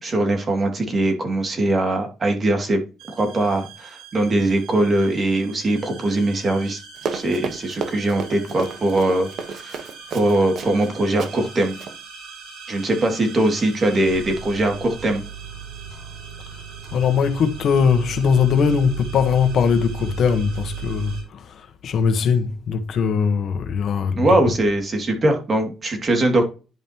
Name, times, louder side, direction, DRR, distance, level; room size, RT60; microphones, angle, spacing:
voice 1, 0.0-2.8 3.1-6.8 7.1-11.8 12.7-15.2 24.2-26.5, right 1 dB, 35° right, 2.4 m, -21 dB
sound 1, 3.0-21.2, right 7 dB, 90° right, 3.1 m, -38 dB
Run, 7.0-10.9 11.2-11.3 11.7-11.9, right 5 dB, 65° right, 1.2 m, -31 dB
voice 2, 16.9-24.3, left 6 dB, 65° left, 1.2 m, -20 dB
11.0 x 5.2 x 3.0 m
cardioid pair, 90°, 0 cm